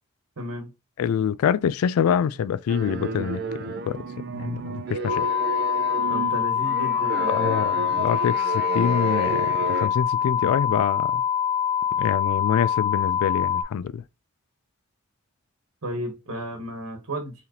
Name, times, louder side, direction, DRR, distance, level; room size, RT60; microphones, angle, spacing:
voice 1, 0.4-0.7 6.1-7.5 15.8-17.3, equal, 90° right, 1.2 m, -33 dB
voice 2, 1.0-3.4 3.9-4.0 4.3-5.3 7.3-11.2 12.0-14.0, left 8 dB, 85° left, 0.3 m, -25 dB
sound 1, 2.7-9.9, right 4 dB, 45° right, 0.5 m, -32 dB
sound 2, 5.1-13.6, left 8 dB, 35° left, 1.9 m, -24 dB
4.5 x 3.5 x 2.8 m
head